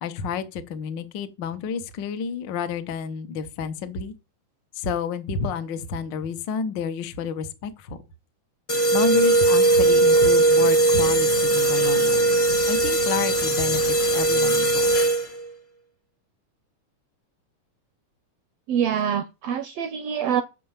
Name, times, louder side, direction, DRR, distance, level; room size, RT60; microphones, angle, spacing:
voice 1, 0.0-4.1 4.7-8.0 8.9-14.9, left 5 dB, 80° left, 1.0 m, -30 dB
sound 1, 8.7-15.5, right 2 dB, 40° left, 0.7 m, -19 dB
voice 2, 18.7-20.4, right 8 dB, 80° right, 1.4 m, -25 dB
7.0 x 5.7 x 7.2 m
omnidirectional pair, 3.6 m